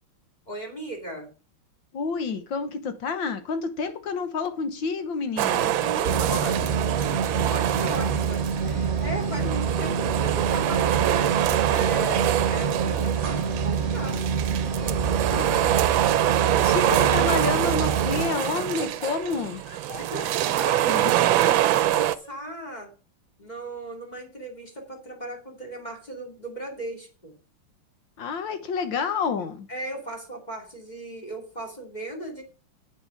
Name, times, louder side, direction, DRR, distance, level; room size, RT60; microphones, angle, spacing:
voice 1, 0.5-1.3 5.8-11.4 11.7-14.3 14.8-15.8 20.0-22.9 23.4-27.3 29.7-32.4, right 1 dB, 20° left, 2.3 m, -37 dB
voice 2, 1.9-5.8 15.3-15.6 16.5-19.6 20.9-21.1 28.2-29.7, left 5 dB, 70° left, 1.8 m, -29 dB
sound 1, 5.4-8.7 8.9-22.2, right 13 dB, 75° right, 1.4 m, -25 dB
sound 2, 6.0-18.3, right 6 dB, 50° right, 1.3 m, -27 dB
Laughter, 16.5-17.1 17.3-22.3, left 2 dB, 40° left, 2.8 m, -47 dB
8.8 x 6.8 x 6.2 m
omnidirectional pair, 2.2 m